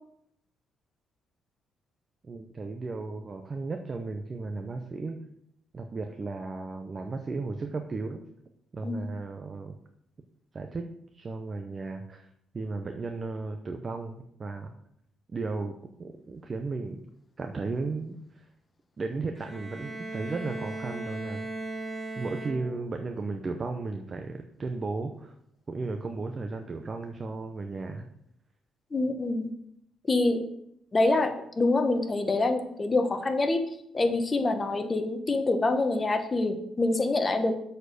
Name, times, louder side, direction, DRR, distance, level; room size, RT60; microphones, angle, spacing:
voice 1, 2.2-5.2 5.7-8.2 8.7-9.7 10.5-10.9 11.1-12.3 12.5-14.7 15.3-17.0 17.4-18.5 19.0-21.5 22.2-25.3 25.7-28.1, right 3 dB, 35° right, 5 dB, 0.8 m, -35 dB
Bowed string instrument, 19.3-23.0, right 2 dB, 15° right, 1.6 m, -38 dB
voice 2, 28.9-29.5 30.1-30.4 30.9-33.6 33.9-37.5, left 2 dB, 30° left, 7 dB, 1.1 m, -26 dB
7.5 x 4.5 x 6.7 m, 0.75 s
cardioid pair, 90°, 0 cm